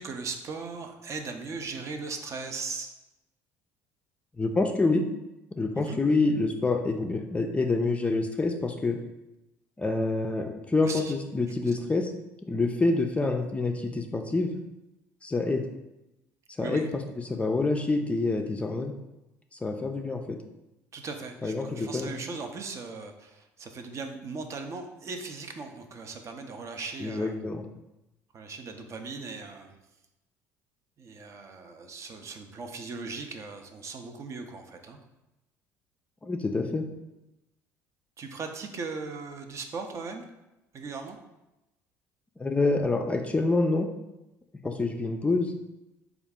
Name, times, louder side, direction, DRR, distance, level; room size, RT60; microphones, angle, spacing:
voice 1, 0.0-2.9 5.7-6.0 10.8-11.1 16.6-16.9 20.9-27.3 28.3-29.8 31.0-35.0 38.2-40.2 40.7-41.2, right 4 dB, 40° right, 5 dB, 0.5 m, -38 dB
voice 2, 4.4-5.0 5.6-9.0 9.8-12.1 12.5-14.5 15.2-15.6 16.6-16.8 17.3-18.9 19.6-20.4 21.4-22.2 27.0-27.7 36.2-36.8 42.4-43.9 44.6-45.5, left 3 dB, 15° left, 4 dB, 0.4 m, -27 dB
3.8 x 2.4 x 3.5 m, 0.95 s
supercardioid pair, 80°, 7 cm